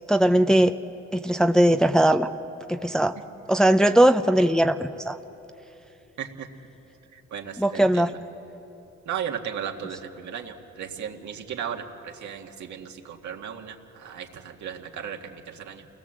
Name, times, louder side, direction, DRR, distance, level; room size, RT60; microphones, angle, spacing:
voice 1, 0.1-0.8 1.1-2.3 2.7-3.2 3.5-5.2 7.6-8.1, right 1 dB, ahead, 8 dB, 0.6 m, -19 dB
voice 2, 6.2-6.5 7.1-8.1 9.1-15.9, right 8 dB, 70° right, 3 dB, 1.9 m, -36 dB
28.5 x 19.5 x 7.6 m, 3.0 s
cardioid pair, 90°, 30 cm